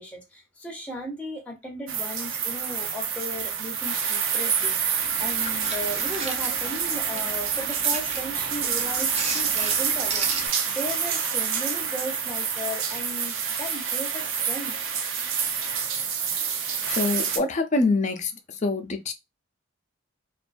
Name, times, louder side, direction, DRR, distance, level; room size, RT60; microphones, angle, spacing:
voice 1, 0.0-14.7, equal, 5° left, 0.8 m, -36 dB
sound 1, 1.9-17.4, right 7 dB, 75° right, 0.5 m, -27 dB
sound 2, 5.0-10.5, right 3 dB, 30° right, 0.5 m, -36 dB
voice 2, 16.9-18.3 18.6-19.1, left 3 dB, 35° left, 0.5 m, -25 dB
2.5 x 2.2 x 2.5 m
head